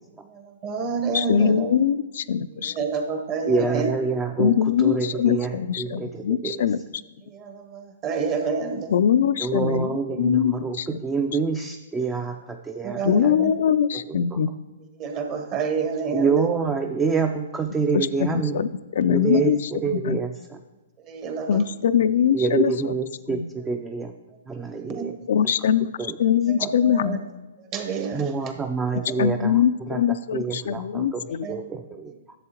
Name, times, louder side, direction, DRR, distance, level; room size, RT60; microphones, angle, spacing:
voice 1, 0.3-1.7 2.8-3.9 7.3-8.9 12.8-13.5 15.0-16.5 21.1-21.6 24.6-25.0 26.5-27.2 27.7-28.3 28.9-29.0 31.4-31.6, right 5 dB, 35° right, 4 dB, 1.1 m, -29 dB
voice 2, 1.1-2.7 4.4-6.8 8.9-11.0 13.0-14.5 17.9-20.2 21.5-22.9 23.3-23.5 25.3-25.9 26.2-27.2 29.2-31.5, left 8 dB, 65° left, 13 dB, 0.3 m, -22 dB
voice 3, 3.4-4.5 4.8-6.6 9.4-10.8 11.0-12.4 12.6-13.3 16.1-18.6 19.1-20.3 22.3-24.1 24.5-25.1 26.0-26.2 28.1-29.5 29.9-30.0 30.3-31.2 31.5-32.1, right 4 dB, 15° right, 5 dB, 0.4 m, -26 dB
11.0 x 7.5 x 3.0 m, 1.2 s
hypercardioid pair, 125°, 0 cm